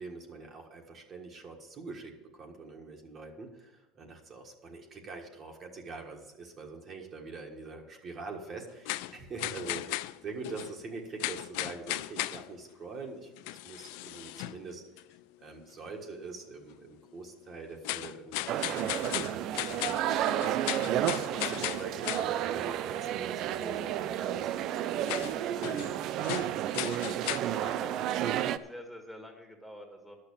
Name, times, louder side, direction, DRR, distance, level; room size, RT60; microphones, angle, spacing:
voice 1, 0.0-14.8 15.4-20.6 21.0-25.9, right 4 dB, 30° right, 1 dB, 1.6 m, -44 dB
sound 1, 8.8-10.8 11.2-12.6 13.4-14.6 15.0-15.2 17.8-22.3 25.1-25.9 26.2-27.4, left 17 dB, 75° left, 0.4 m, -36 dB
sound 2, 18.5-28.6, right 11 dB, 50° right, 0.5 m, -31 dB
voice 2, 27.2-30.2, equal, 5° left, 2 dB, 1.8 m, -47 dB
11.5 x 6.6 x 8.6 m, 1.1 s
cardioid pair, 150°, 0 cm